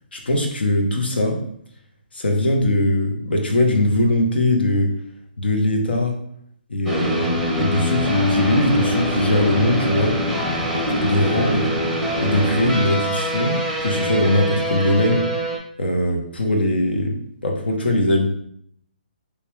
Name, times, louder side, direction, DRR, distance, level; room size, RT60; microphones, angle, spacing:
voice 1, 0.1-1.4 2.1-4.9 5.4-6.2 6.7-10.2 11.0-11.7 12.2-15.2 15.8-17.1 17.4-18.3, left 1 dB, 85° left, 2 dB, 0.9 m, -20 dB
sound 1, 6.9-15.6, equal, ahead, 0.6 m, -23 dB
3.4 x 2.9 x 3.2 m, 0.67 s
hypercardioid pair, 150°, 5 cm